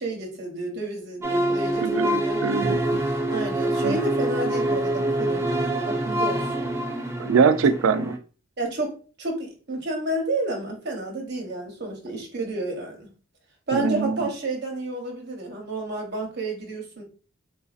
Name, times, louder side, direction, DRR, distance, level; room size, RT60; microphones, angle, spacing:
voice 1, 0.0-2.5 3.3-5.5 5.9-6.7 8.6-13.1 13.7-17.0, right 2 dB, 55° right, 1 dB, 0.9 m, -30 dB
sound 1, 1.2-8.2, right 1 dB, 15° right, 0.4 m, -25 dB
voice 2, 1.8-2.8 3.8-4.0 7.2-8.1 13.7-14.2, right 5 dB, 90° right, 11 dB, 0.4 m, -22 dB
3.8 x 2.6 x 2.4 m, 0.36 s
head